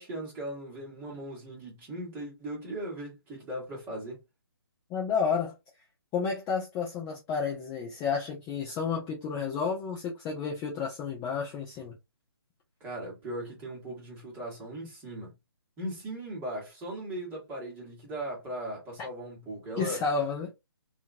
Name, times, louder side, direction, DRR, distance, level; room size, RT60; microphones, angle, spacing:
voice 1, 0.0-4.2 12.8-15.3 15.8-20.0, right 1 dB, 15° right, 1.5 m, -38 dB
voice 2, 4.9-5.5 6.1-11.9 19.8-20.5, left 5 dB, 15° left, 0.5 m, -31 dB
2.7 x 2.6 x 2.5 m
figure-of-eight pair, 150°, 13 cm